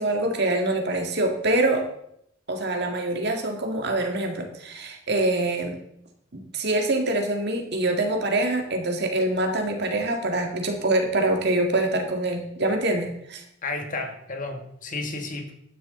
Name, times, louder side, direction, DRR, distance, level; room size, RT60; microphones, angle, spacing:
voice 1, 0.0-1.9 2.5-5.8 6.3-13.4, right 2 dB, 60° right, 3 dB, 1.9 m, -25 dB
voice 2, 13.6-15.5, left 3 dB, 40° left, 4 dB, 1.5 m, -32 dB
12.5 x 9.9 x 3.8 m, 0.73 s
head